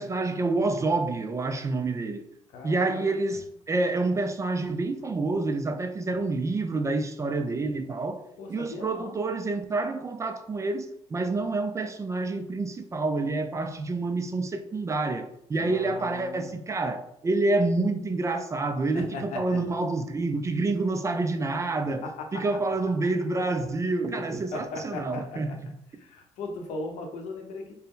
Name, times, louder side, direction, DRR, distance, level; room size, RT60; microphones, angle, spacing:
voice 1, 0.0-2.2 2.6-22.0 22.3-25.5, right 3 dB, 25° right, 0.4 m, -28 dB
voice 2, 2.5-3.4 8.4-9.2 15.5-16.5 18.9-19.6 22.0-22.4 24.5-25.6 26.0-27.8, left 3 dB, 75° left, 0.9 m, -38 dB
4.1 x 2.1 x 3.7 m
cardioid pair, 100°, 12 cm